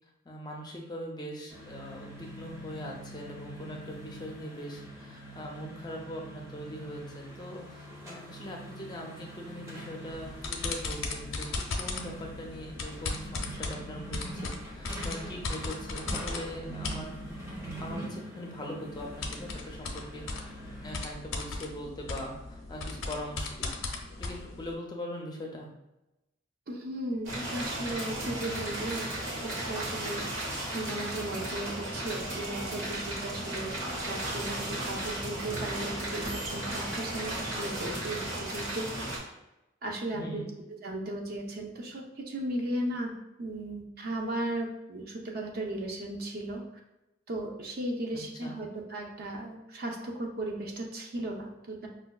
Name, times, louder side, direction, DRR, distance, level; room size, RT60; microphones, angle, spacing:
voice 1, 0.3-11.5 11.8-17.2 17.8-20.2 20.8-23.7 24.2-25.7 40.1-40.5 48.1-48.6, equal, 20° left, 0 dB, 0.4 m, -41 dB
sound 1, 1.5-21.0, right 1 dB, 15° right, 0.7 m, -44 dB
sound 2, 10.1-18.0 18.9-24.8, left 3 dB, 90° left, 0.6 m, -38 dB
voice 2, 26.7-29.1 29.4-30.4 30.7-33.8 34.1-39.1 39.8-40.4 40.8-43.1 43.4-46.6 47.3-51.9, right 1 dB, 50° right, 1 dB, 0.5 m, -36 dB
sound 3, 27.2-39.2, right 1 dB, 90° right, 1.2 m, -35 dB
5.2 x 2.2 x 2.3 m, 0.95 s
head